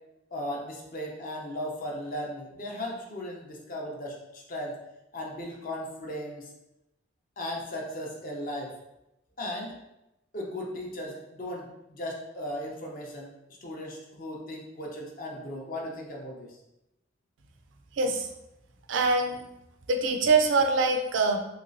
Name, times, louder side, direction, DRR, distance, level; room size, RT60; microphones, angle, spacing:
voice 1, 0.3-4.8 5.1-6.5 7.4-8.7 9.4-9.8 10.3-13.3 13.6-16.6, left 1 dB, 45° left, 0 dB, 0.6 m, -36 dB
voice 2, 17.9-18.3 18.9-19.5 19.9-21.4, right 3 dB, 75° right, 5 dB, 0.4 m, -24 dB
3.0 x 3.0 x 2.6 m, 0.91 s
head